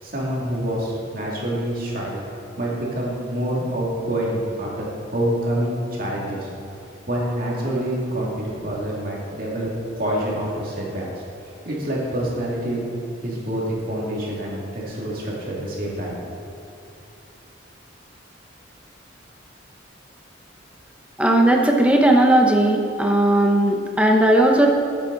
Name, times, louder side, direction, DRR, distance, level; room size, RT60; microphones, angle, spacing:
voice 1, 0.0-2.2 2.6-6.5 7.1-9.7 10.0-11.1 11.6-12.8 13.2-16.2, right 1 dB, 45° right, -4 dB, 2.5 m, -26 dB
voice 2, 21.2-24.7, right 1 dB, 5° right, 1 dB, 0.9 m, -17 dB
15.0 x 8.4 x 4.0 m, 2.7 s
head